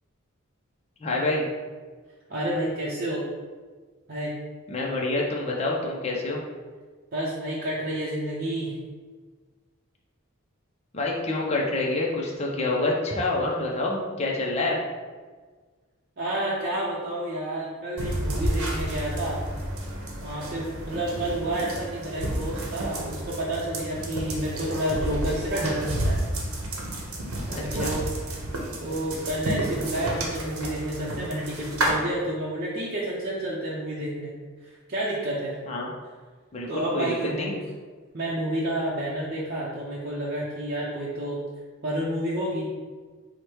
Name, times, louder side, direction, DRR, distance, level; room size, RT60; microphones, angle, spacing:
voice 1, 1.0-1.5 4.7-6.4 10.9-14.8 27.5-28.0 35.7-35.9 36.5-37.5, left 2 dB, 30° left, -3 dB, 0.5 m, -27 dB
voice 2, 2.3-3.2 4.1-4.3 7.1-8.7 16.2-19.4 20.2-26.2 27.5-28.1 28.8-34.3 34.6-35.6 36.7-37.5 38.1-41.4 41.8-42.7, right 1 dB, 45° right, -7 dB, 0.6 m, -30 dB
sound 1, 18.0-31.9, right 1 dB, 85° right, 0.8 m, -31 dB
4.8 x 2.1 x 4.5 m, 1.5 s
head